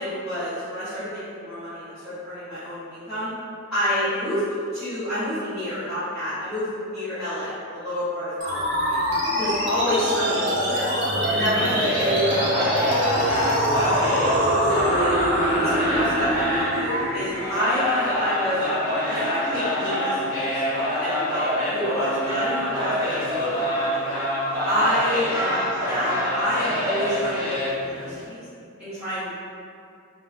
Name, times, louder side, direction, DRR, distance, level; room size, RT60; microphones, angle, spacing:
voice 1, 0.0-3.3 3.7-4.4 4.7-9.0 9.4-10.9 11.2-13.2 13.7-15.2 15.6-18.6 19.1-20.2 20.5-23.3 23.7-24.2 24.6-28.4 28.8-29.3, equal, 5° right, -19 dB, 0.7 m, -29 dB
sound 1, 8.4-19.4, equal, 55° right, 0.7 m, -24 dB
sound 2, 11.5-28.3, equal, 70° left, 0.8 m, -26 dB
2.8 x 2.1 x 2.4 m, 2.5 s
head